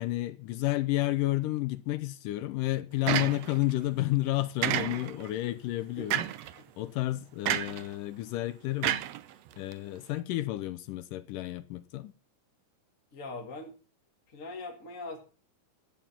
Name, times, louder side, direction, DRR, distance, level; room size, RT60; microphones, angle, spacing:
voice 1, 0.0-6.3 6.8-9.1 9.6-12.1, left 17 dB, 80° left, 2.4 m, -31 dB
sound 1, 3.1-3.7 4.6-5.3 6.1-6.5 7.5-7.9 8.8-9.7, right 12 dB, 75° right, 1.5 m, -30 dB
voice 2, 13.1-13.7 14.3-15.2, left 2 dB, 30° left, 1.8 m, -41 dB
13.5 x 8.8 x 5.8 m
omnidirectional pair, 3.8 m